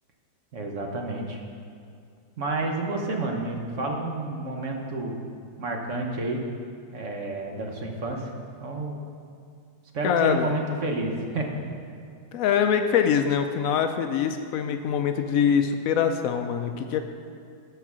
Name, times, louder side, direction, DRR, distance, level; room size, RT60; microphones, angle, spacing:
voice 1, 0.5-1.4 2.4-5.2 5.6-6.4 6.9-8.3 8.6-9.0 9.9-11.5, right 2 dB, 45° right, 2 dB, 1.2 m, -30 dB
voice 2, 10.0-10.5 12.3-17.0, left 7 dB, 80° left, 7 dB, 0.7 m, -24 dB
13.5 x 4.6 x 6.1 m, 2.3 s
omnidirectional pair, 2.0 m